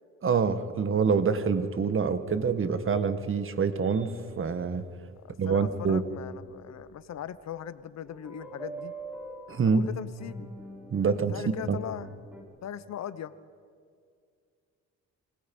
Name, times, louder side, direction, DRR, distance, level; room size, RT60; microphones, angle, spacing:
voice 1, 0.2-4.8 5.4-6.0 9.5-9.8 10.9-11.8, right 5 dB, 45° right, 11 dB, 1.7 m, -26 dB
sound 1, 3.8-4.5 6.5-6.6 8.0-12.4, right 2 dB, 5° right, 6.3 m, -44 dB
voice 2, 5.2-8.9 9.6-10.5 11.0-12.1 12.6-13.3, left 9 dB, 60° left, 16 dB, 1.0 m, -39 dB
29.0 x 24.5 x 5.5 m, 2.2 s
cardioid pair, 90°, 30 cm